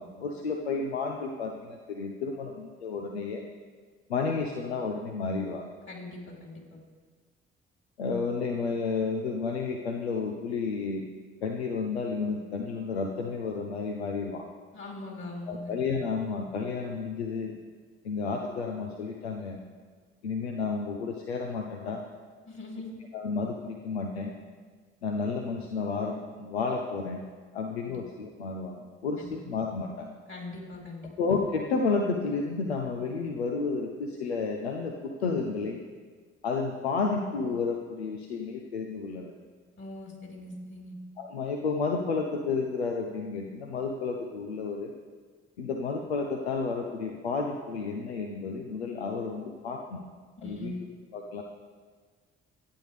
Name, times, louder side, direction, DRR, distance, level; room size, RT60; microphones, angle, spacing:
voice 1, 0.0-3.5 4.1-5.6 8.0-11.0 11.4-14.5 15.5-17.5 18.0-19.6 20.2-22.0 23.1-24.3 25.0-27.2 27.5-30.1 31.2-35.8 36.4-39.3 41.2-44.9 45.6-50.0 50.4-50.7 51.1-51.4, left 4 dB, 85° left, 2 dB, 0.8 m, -31 dB
voice 2, 5.9-6.8 14.7-15.7 22.5-23.0 27.9-28.0 29.2-29.4 30.3-31.1 39.8-40.9 50.4-50.8, left 2 dB, 40° left, 0 dB, 4.2 m, -41 dB
25.0 x 9.6 x 3.4 m, 1.5 s
figure-of-eight pair, 40°, 31 cm